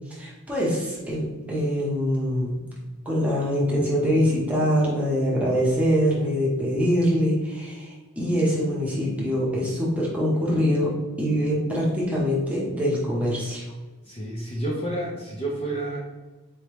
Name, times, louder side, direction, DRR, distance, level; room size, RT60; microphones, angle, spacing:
voice 1, 0.1-2.6 3.0-10.9 11.2-13.6, equal, 5° right, -5 dB, 0.9 m, -24 dB
voice 2, 14.0-16.0, right 1 dB, 25° left, -4 dB, 0.6 m, -30 dB
4.2 x 3.2 x 3.1 m, 1.2 s
head